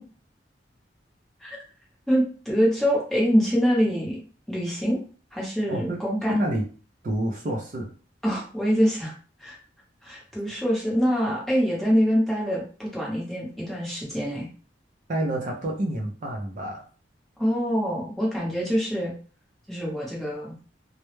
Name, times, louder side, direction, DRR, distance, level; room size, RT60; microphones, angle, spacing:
voice 1, 2.1-4.2 4.5-5.0 5.3-6.4 8.2-9.1 9.4-9.6 10.0-14.5 17.4-19.1 19.7-20.6, equal, ahead, -4 dB, 0.8 m, -25 dB
voice 2, 5.7-6.0 6.3-6.6 7.0-7.9 15.1-16.9, right 1 dB, 45° right, -1 dB, 0.4 m, -28 dB
2.1 x 2.0 x 3.0 m, 0.38 s
head